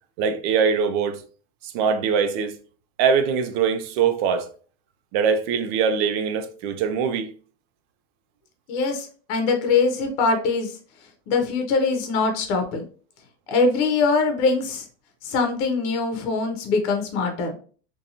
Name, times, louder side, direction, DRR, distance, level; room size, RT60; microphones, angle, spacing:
voice 1, 0.2-1.2 1.7-2.5 3.0-4.5 5.1-7.3, right 6 dB, 60° right, 0.6 m, -22 dB
voice 2, 8.7-10.7 11.3-12.8 13.5-14.9 15.2-17.5, left 4 dB, 55° left, 0.7 m, -22 dB
2.6 x 2.3 x 2.6 m
supercardioid pair, 110°, 34 cm